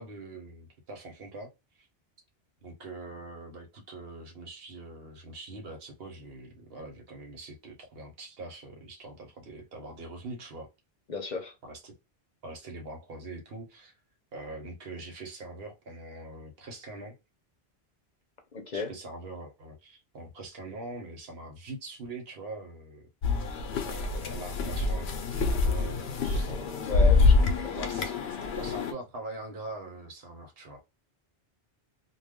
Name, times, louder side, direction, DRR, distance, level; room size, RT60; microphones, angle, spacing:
voice 1, 0.0-1.9 2.6-10.7 11.6-11.9 12.4-13.9 14.3-17.2 18.7-23.1 23.8-26.6 27.2-28.2 28.6-30.8, right 2 dB, 75° right, 1.0 m, -43 dB
voice 2, 11.1-11.5 18.5-18.9 26.5-27.7, left 4 dB, 50° left, 0.7 m, -35 dB
sound 1, 23.2-28.9, left 3 dB, 90° left, 0.8 m, -26 dB
2.3 x 2.2 x 3.5 m
omnidirectional pair, 1.0 m